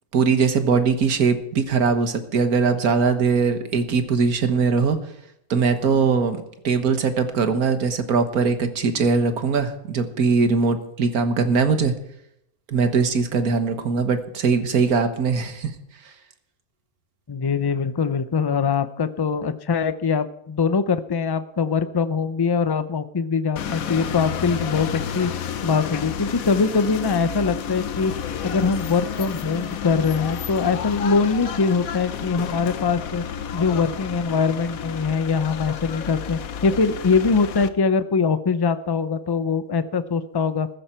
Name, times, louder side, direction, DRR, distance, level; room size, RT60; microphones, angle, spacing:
voice 1, 0.1-5.0 5.5-6.4 6.6-11.9 12.7-15.7, right 5 dB, 90° right, 8 dB, 1.8 m, -21 dB
voice 2, 17.3-25.3 25.6-28.1 28.4-33.2 33.5-40.7, left 5 dB, 30° left, 12 dB, 0.4 m, -22 dB
sound 1, 23.6-37.7, left 8 dB, 75° left, 1.3 m, -31 dB
16.0 x 14.0 x 4.5 m, 0.77 s
omnidirectional pair, 1.5 m